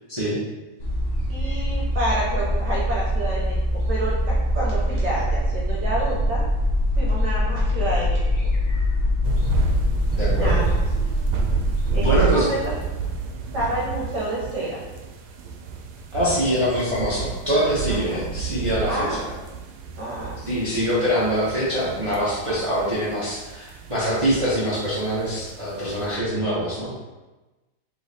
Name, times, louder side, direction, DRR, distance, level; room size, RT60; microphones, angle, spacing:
sound 1, 0.8-12.2, equal, 70° left, 0.7 m, -23 dB
voice 1, 1.3-3.6 3.9-6.4 7.0-8.3 10.3-10.8 11.9-12.7 13.5-14.8 16.2-16.5 17.9-18.2 18.9-19.2 20.0-20.3, right 1 dB, 60° right, -5 dB, 1.4 m, -29 dB
sound 2, 9.2-26.2, right 5 dB, 80° right, 1.4 m, -30 dB
voice 2, 10.2-10.6 12.0-12.5 16.1-19.3 20.5-26.9, equal, 35° right, -9 dB, 0.5 m, -24 dB
3.8 x 3.2 x 4.0 m, 1.1 s
omnidirectional pair, 2.3 m